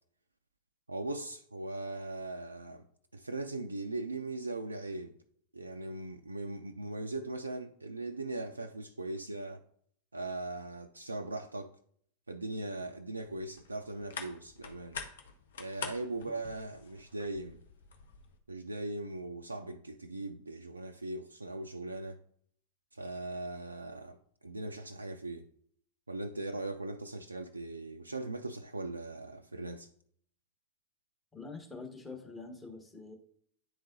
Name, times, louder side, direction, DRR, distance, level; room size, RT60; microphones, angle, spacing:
voice 1, 0.9-2.9 3.1-5.2 5.5-9.6 10.1-11.8 12.3-15.0 15.6-17.6 18.5-22.2 22.9-25.5 26.1-29.9, right 2 dB, 80° right, 0.3 m, -39 dB
sound 1, 13.2-18.4, left 5 dB, 65° left, 0.8 m, -46 dB
voice 2, 31.3-33.2, left 3 dB, 10° left, 1.4 m, -45 dB
9.8 x 3.8 x 2.7 m
figure-of-eight pair, 90°, 0 cm